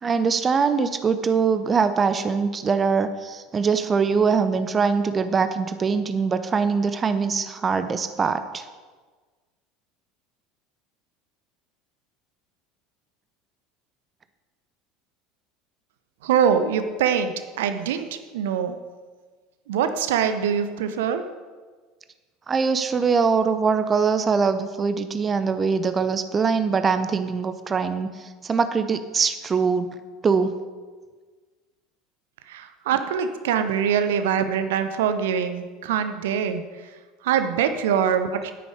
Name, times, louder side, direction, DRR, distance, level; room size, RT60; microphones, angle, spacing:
voice 1, 0.0-8.7 22.5-29.9 30.2-30.5, right 5 dB, 25° right, 11 dB, 0.7 m, -22 dB
voice 2, 16.2-18.8 19.7-21.2 32.5-37.0 37.2-38.5, right 8 dB, 60° right, 9 dB, 0.7 m, -24 dB
10.0 x 9.3 x 5.0 m, 1.4 s
figure-of-eight pair, 70°, 0 cm